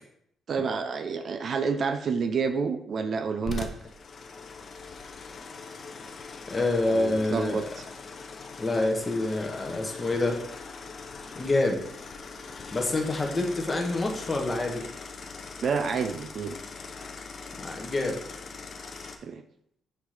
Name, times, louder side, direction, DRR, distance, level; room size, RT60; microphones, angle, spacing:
voice 1, 0.5-3.7 6.9-7.9 15.6-16.6 19.2-19.4, right 5 dB, 45° right, 9 dB, 0.4 m, -29 dB
sound 1, 3.4-19.2, left 4 dB, 40° left, 0.7 m, -41 dB
voice 2, 6.5-7.6 8.6-10.4 11.3-11.8 12.7-14.9 17.6-18.2, left 2 dB, 20° left, 2 dB, 1.0 m, -27 dB
5.8 x 3.5 x 4.8 m, 0.71 s
cardioid pair, 130°, 0 cm